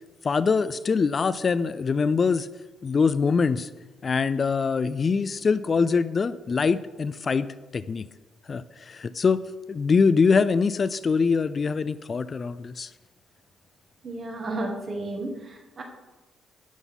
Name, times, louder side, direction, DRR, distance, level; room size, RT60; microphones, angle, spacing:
voice 1, 0.2-2.5 2.8-3.7 4.0-7.5 7.7-8.0 8.5-9.4 9.7-12.9, left 5 dB, 40° left, 15 dB, 0.3 m, -23 dB
voice 2, 14.0-15.8, right 2 dB, 40° right, 3 dB, 1.7 m, -33 dB
11.0 x 4.1 x 5.4 m, 1.2 s
cardioid pair, 90°, 0 cm